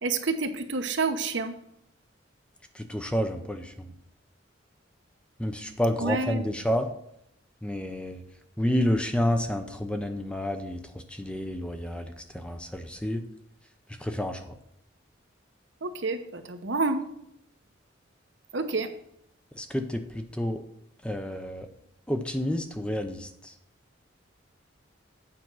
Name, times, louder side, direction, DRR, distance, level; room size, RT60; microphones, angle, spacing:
voice 1, 0.0-1.6 6.0-6.6 15.8-17.1 18.5-18.9, right 3 dB, 70° right, 7 dB, 1.0 m, -29 dB
voice 2, 2.7-3.9 5.4-6.9 7.6-8.2 8.6-13.2 14.0-14.5 19.6-20.6 21.0-21.7 22.1-23.5, equal, 5° left, 6 dB, 0.6 m, -30 dB
8.7 x 5.2 x 6.1 m, 0.75 s
head